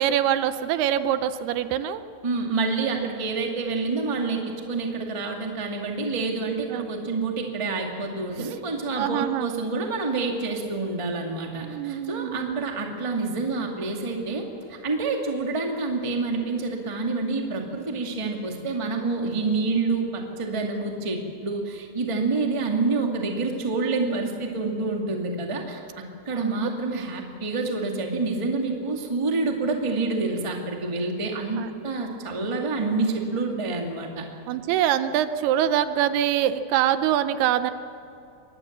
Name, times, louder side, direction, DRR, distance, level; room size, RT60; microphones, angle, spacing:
voice 1, 0.0-2.0 6.7-6.9 8.4-8.5 9.0-9.5 11.6-12.6 26.3-26.7 31.6-31.7 34.5-37.7, right 11 dB, 80° right, 11 dB, 2.6 m, -24 dB
voice 2, 2.2-4.4 4.7-25.8 26.2-34.2, right 3 dB, 15° right, 1 dB, 0.9 m, -27 dB
23.5 x 19.0 x 7.4 m, 2.7 s
omnidirectional pair, 4.8 m